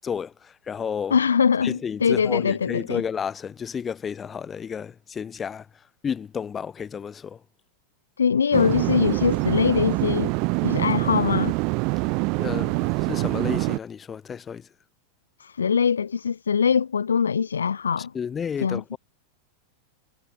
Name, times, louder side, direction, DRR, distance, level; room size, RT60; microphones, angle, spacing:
voice 1, 0.0-1.2 1.6-5.7 6.0-7.4 12.4-14.7 18.1-19.0, left 7 dB, 20° left, 6.1 m, -32 dB
voice 2, 1.1-3.0 8.2-10.3 10.6-11.5 15.4-18.1 18.6-18.8, left 6 dB, 70° left, 5.4 m, -22 dB
sound 1, 8.5-13.8, right 31 dB, 45° right, 1.6 m, -25 dB
figure-of-eight pair, 90°, 0 cm